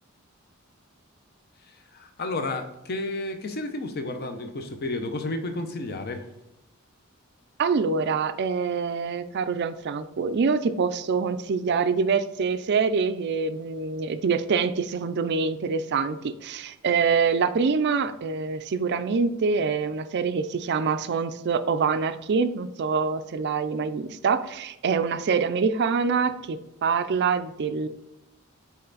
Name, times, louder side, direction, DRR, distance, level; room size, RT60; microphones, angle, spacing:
voice 1, 1.9-6.3, left 2 dB, 50° left, 7 dB, 0.7 m, -31 dB
voice 2, 7.6-27.9, right 5 dB, 55° right, 11 dB, 0.4 m, -25 dB
5.5 x 4.3 x 4.0 m, 0.90 s
head